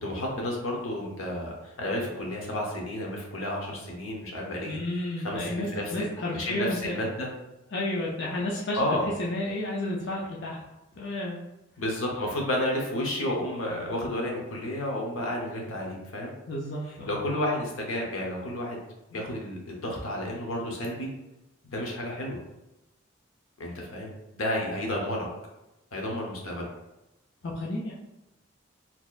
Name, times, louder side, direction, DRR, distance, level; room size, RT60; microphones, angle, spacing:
voice 1, 0.0-4.8 5.2-6.1 6.3-7.3 8.8-9.1 11.8-16.3 17.1-18.8 19.1-21.1 21.6-22.4 23.6-25.3 25.9-26.7, left 1 dB, 90° left, -1 dB, 0.9 m, -31 dB
voice 2, 4.6-7.0 7.7-8.8 9.2-10.6 10.9-11.4 16.5-17.2 27.4-27.9, left 1 dB, 60° left, -4 dB, 0.5 m, -31 dB
4.1 x 2.9 x 2.4 m, 0.95 s
head